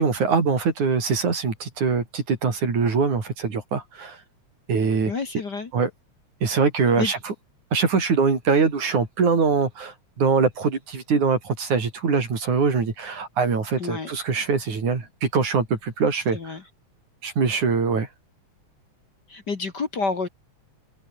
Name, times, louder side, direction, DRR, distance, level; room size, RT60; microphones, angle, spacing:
voice 1, 0.0-4.2 4.7-5.1 5.7-5.9 6.4-7.3 7.7-16.6 17.2-18.1, right 5 dB, 80° right, 6.1 m, -23 dB
voice 2, 5.1-5.7 7.0-7.1 13.8-14.2 16.3-16.6 19.3-20.3, left 4 dB, 40° left, 2.3 m, -29 dB
open air
omnidirectional pair, 3.4 m